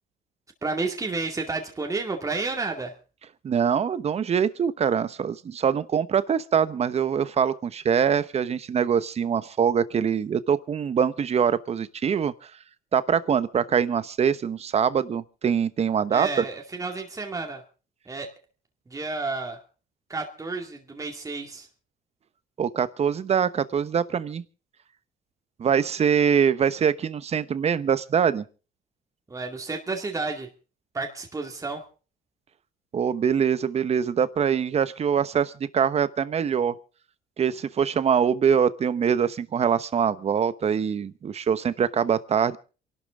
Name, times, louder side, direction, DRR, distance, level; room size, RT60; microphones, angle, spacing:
voice 1, 0.6-2.9 16.1-17.6 18.1-18.3 18.9-19.6 20.1-21.7 29.3-30.5 30.9-31.8, right 3 dB, 20° right, 2 dB, 2.3 m, -31 dB
voice 2, 3.4-12.3 12.9-16.4 22.6-24.4 25.6-28.4 32.9-36.7 37.4-42.6, right 7 dB, 40° right, 14 dB, 1.0 m, -23 dB
27.5 x 12.0 x 3.7 m, 0.36 s
cardioid pair, 110°, 17 cm